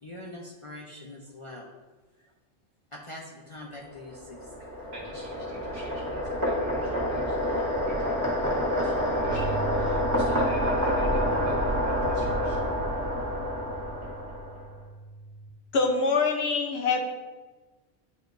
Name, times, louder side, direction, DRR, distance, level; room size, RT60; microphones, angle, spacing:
voice 1, 0.0-1.7 2.2-2.3 2.9-4.5, left 1 dB, 35° left, -2 dB, 0.7 m, -43 dB
sound 1, 4.0-14.7, equal, 25° right, 1.8 m, -28 dB
voice 2, 4.9-12.6, right 1 dB, 45° right, -5 dB, 1.1 m, -44 dB
sound 2, 9.2-15.5, right 3 dB, 90° right, 1.2 m, -41 dB
voice 3, 15.7-17.0, left 4 dB, 75° left, 3 dB, 1.1 m, -24 dB
9.2 x 4.9 x 2.6 m, 1.3 s
omnidirectional pair, 1.1 m